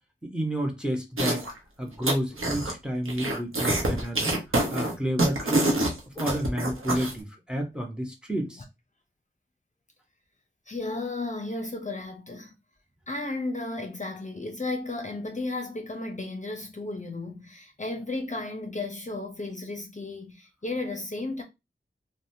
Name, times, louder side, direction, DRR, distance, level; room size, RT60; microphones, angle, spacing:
voice 1, 0.2-1.5 1.8-4.3 4.7-5.7 6.2-8.6, equal, 5° right, 0.8 m, -30 dB
sound 1, 1.2-1.6 1.9-2.7 3.1-7.1, right 1 dB, 85° right, 0.7 m, -26 dB
voice 2, 10.7-12.5 13.1-21.4, left 2 dB, 35° left, 0.6 m, -34 dB
3.0 x 2.1 x 2.6 m
wide cardioid pair, 60°, 21 cm